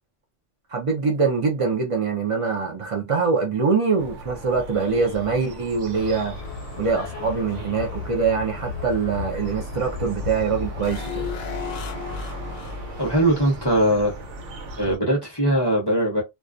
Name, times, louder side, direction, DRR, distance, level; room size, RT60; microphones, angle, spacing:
voice 1, 0.7-6.4 6.8-11.2, right 5 dB, 55° right, 0.3 m, -24 dB
sound 1, 4.0-15.0, equal, 75° right, 1.0 m, -37 dB
sound 2, 5.9-10.9, left 6 dB, 90° left, 0.9 m, -35 dB
sound 3, 10.8-14.0 14.2-14.3, left 8 dB, 65° left, 0.4 m, -36 dB
voice 2, 13.0-14.1 14.8-16.2, right 1 dB, 25° left, 0.6 m, -20 dB
2.2 x 2.2 x 2.4 m
omnidirectional pair, 1.3 m